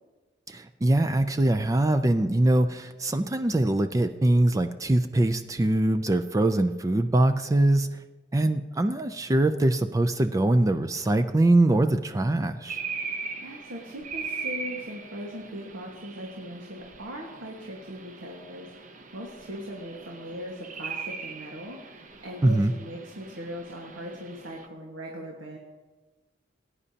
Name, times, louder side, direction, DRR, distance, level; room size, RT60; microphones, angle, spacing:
voice 1, 0.5-8.0 8.3-12.8 22.4-22.7, right 1 dB, 20° right, 8 dB, 0.4 m, -23 dB
sound 1, 12.6-24.7, right 5 dB, 45° right, 0.7 m, -40 dB
voice 2, 13.4-25.6, equal, 85° right, -1 dB, 1.5 m, -39 dB
18.5 x 9.8 x 2.8 m, 1.2 s
head